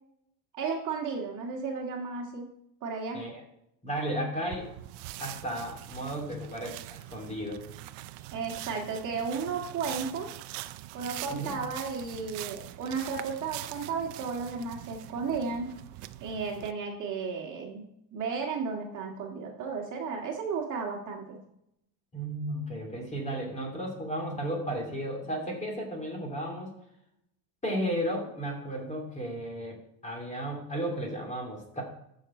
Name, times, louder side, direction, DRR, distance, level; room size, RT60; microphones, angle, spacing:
voice 1, 0.5-2.5 2.8-3.2 8.3-10.3 10.9-15.7 16.2-17.8 18.1-21.4, right 5 dB, 35° right, 0 dB, 2.0 m, -34 dB
voice 2, 3.8-4.7 5.2-7.6 11.3-11.6 22.1-26.7 27.6-31.8, right 1 dB, 15° left, 0 dB, 2.8 m, -34 dB
sound 1, 4.5-16.7, right 15 dB, 65° right, 0.8 m, -43 dB
13.5 x 6.6 x 4.4 m, 0.79 s
cardioid pair, 145°, 49 cm